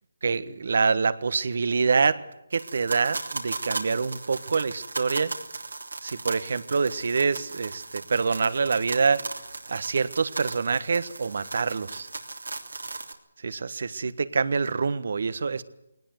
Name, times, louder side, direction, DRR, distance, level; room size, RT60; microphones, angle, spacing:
voice 1, 0.2-2.2 2.5-5.3 6.0-9.2 9.7-12.1 13.4-15.6, right 5 dB, 60° right, 14 dB, 1.4 m, -26 dB
sound 1, 2.5-13.1, right 3 dB, 85° right, 3.3 m, -37 dB
21.0 x 19.0 x 8.0 m, 0.83 s
figure-of-eight pair, 155°, 0 cm